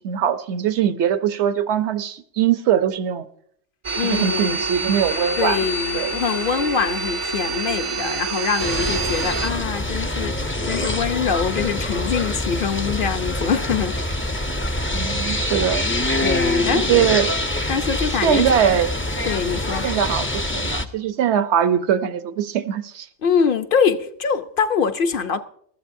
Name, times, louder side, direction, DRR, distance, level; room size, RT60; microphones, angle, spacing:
voice 1, 0.0-3.3 4.0-5.6 5.9-6.2 14.9-15.9 16.7-17.3 18.2-18.9 19.8-23.1, right 9 dB, 75° right, 1.0 m, -21 dB
sound 1, 3.8-9.5, right 3 dB, 40° right, 0.5 m, -26 dB
voice 2, 4.0-4.6 5.4-14.0 16.2-16.9 17.7-18.4 19.2-19.9 23.2-25.4, left 6 dB, 55° left, 0.8 m, -23 dB
sound 2, 8.6-20.9, left 1 dB, 15° left, 0.5 m, -25 dB
21.5 x 13.5 x 2.6 m
omnidirectional pair, 1.2 m